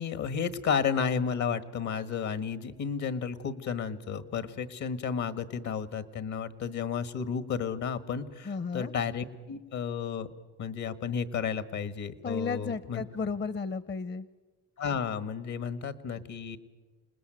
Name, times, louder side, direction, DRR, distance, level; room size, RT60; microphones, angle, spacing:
voice 1, 0.0-10.3 10.6-13.0 14.8-16.6, left 6 dB, 70° left, 13 dB, 1.8 m, -32 dB
voice 2, 8.5-8.9 12.2-14.3, left 4 dB, 35° left, 17 dB, 0.7 m, -33 dB
27.5 x 20.0 x 9.2 m, 1.3 s
cardioid pair, 90°, 30 cm